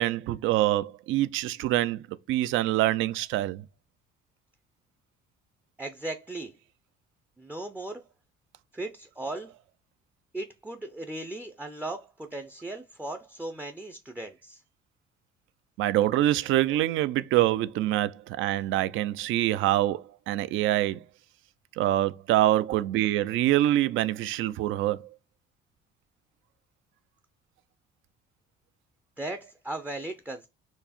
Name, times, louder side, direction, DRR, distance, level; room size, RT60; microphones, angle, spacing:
voice 1, 0.0-2.0 2.3-3.6 15.8-21.0 21.8-25.0, right 14 dB, 70° right, 0.4 m, -25 dB
voice 2, 5.8-6.5 7.4-8.0 8.7-9.5 10.3-14.6 29.2-30.5, right 2 dB, 10° right, 0.4 m, -37 dB
4.6 x 2.8 x 4.1 m
cardioid pair, 125°, 21 cm